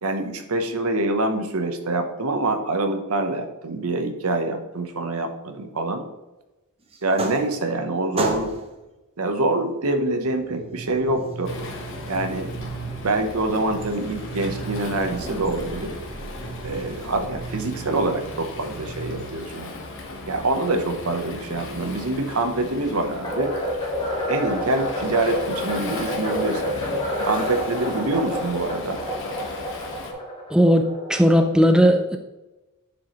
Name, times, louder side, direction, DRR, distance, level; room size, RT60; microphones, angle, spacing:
voice 1, 0.0-6.0 7.0-8.5 9.2-11.5 12.1-12.7 13.0-15.9 16.6-19.7 20.3-23.5 24.3-26.7 27.2-29.0, right 2 dB, 70° right, 7 dB, 0.9 m, -25 dB
sound 1, 6.9-7.8 8.1-8.8 9.9-19.3, right 3 dB, 25° right, 0.8 m, -34 dB
Waves surf, 11.4-30.1, left 2 dB, 55° left, 1.3 m, -37 dB
sound 2, 23.2-31.5, equal, 25° left, 1.5 m, -29 dB
voice 2, 30.5-32.2, equal, 5° right, 5 dB, 0.4 m, -17 dB
10.5 x 4.7 x 3.1 m, 1.0 s
head